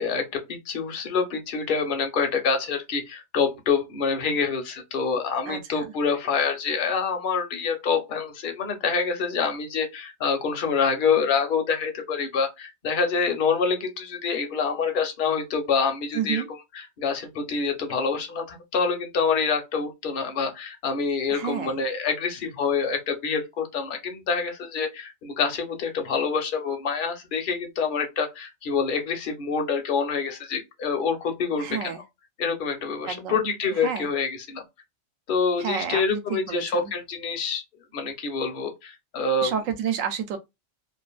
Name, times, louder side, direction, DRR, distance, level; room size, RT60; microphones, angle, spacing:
voice 1, 0.0-16.4 17.0-31.9 32.4-34.6 35.3-37.6 37.9-39.5, left 5 dB, 50° left, 0.7 m, -26 dB
voice 2, 5.5-5.9 16.1-16.5 21.3-21.8 31.6-32.0 33.1-33.4 33.8-34.1 35.6-36.9 39.4-40.4, right 8 dB, 85° right, 1.0 m, -30 dB
2.6 x 2.4 x 2.2 m
omnidirectional pair, 1.3 m